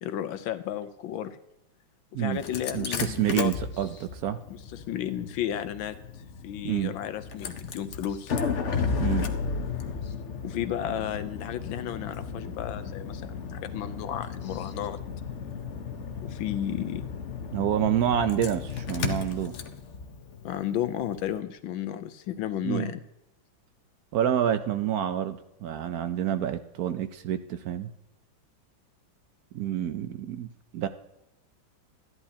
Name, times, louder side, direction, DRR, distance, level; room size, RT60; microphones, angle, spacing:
voice 1, 0.0-1.4 2.1-3.5 4.5-5.9 6.4-8.4 10.4-15.0 16.2-17.1 20.4-23.0, left 10 dB, 85° left, 11 dB, 1.4 m, -33 dB
Engine starting, 2.3-21.3, left 6 dB, 55° left, 0.8 m, -34 dB
voice 2, 2.7-4.4 6.6-6.9 9.0-9.3 17.5-19.5 22.6-22.9 24.1-27.9 29.5-30.9, right 10 dB, 70° right, 10 dB, 0.9 m, -28 dB
14.0 x 11.0 x 2.8 m, 0.87 s
omnidirectional pair, 2.1 m